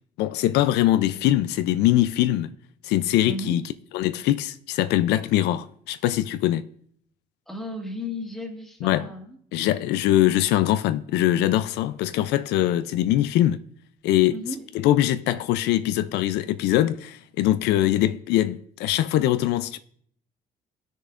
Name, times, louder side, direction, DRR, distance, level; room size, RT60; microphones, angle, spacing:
voice 1, 0.2-2.5 2.8-3.6 3.9-6.7 8.8-9.1 9.5-13.6 14.0-14.4 14.7-19.8, left 13 dB, 85° left, 0.4 m, -22 dB
voice 2, 3.2-3.6 7.5-9.7 14.3-14.6 17.6-18.2, left 1 dB, ahead, 1.7 m, -35 dB
14.5 x 6.6 x 2.5 m
cardioid pair, 110°, 17 cm